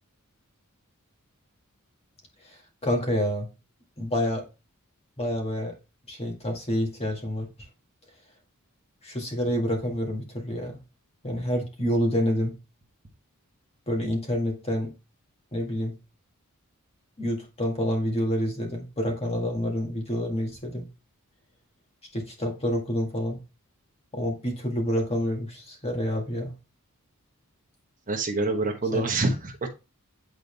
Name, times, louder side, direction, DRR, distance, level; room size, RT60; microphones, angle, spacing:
voice 1, 2.8-3.5 4.0-4.4 5.2-5.7 6.1-7.5 9.0-10.8 11.2-12.5 13.9-14.9 15.5-15.9 17.2-20.9 22.1-23.4 24.1-26.6 28.9-29.1, equal, 30° left, 1.9 m, -28 dB
voice 2, 28.1-29.7, right 2 dB, 35° right, 1.1 m, -26 dB
9.0 x 4.1 x 3.3 m
head